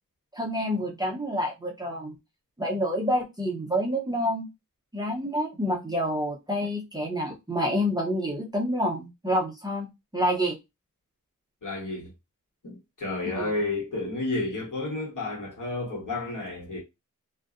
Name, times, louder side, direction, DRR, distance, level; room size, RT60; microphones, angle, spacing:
voice 1, 0.3-2.1 2.6-4.5 4.9-10.6 13.4-13.5, equal, 10° right, 0.6 m, -28 dB
voice 2, 11.6-12.1 12.6-16.8, left 2 dB, 65° left, 1.3 m, -31 dB
2.6 x 2.0 x 2.4 m
wide cardioid pair, 75°, 34 cm